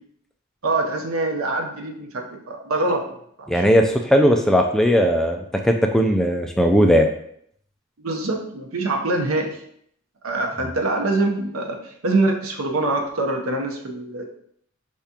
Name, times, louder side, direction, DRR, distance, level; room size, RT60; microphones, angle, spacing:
voice 1, 0.6-3.0 3.4-3.7 8.0-9.6 10.2-14.3, right 2 dB, 85° right, 3 dB, 0.8 m, -24 dB
voice 2, 3.5-7.1, equal, ahead, 3 dB, 0.3 m, -18 dB
4.8 x 3.5 x 2.8 m, 0.67 s
head